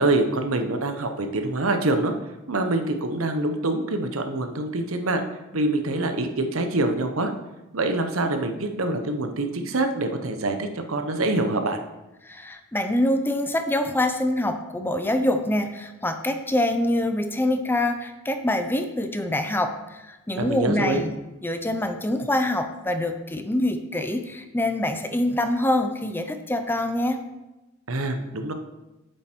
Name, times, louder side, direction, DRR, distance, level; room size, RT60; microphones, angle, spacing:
voice 1, 0.0-2.1 2.5-5.2 5.5-7.3 7.7-11.8 20.4-21.0 27.9-28.5, right 2 dB, 90° right, 6 dB, 1.0 m, -25 dB
voice 2, 12.2-21.1 21.4-27.2, left 1 dB, 10° left, 7 dB, 0.6 m, -25 dB
7.9 x 7.6 x 4.5 m, 1.0 s
head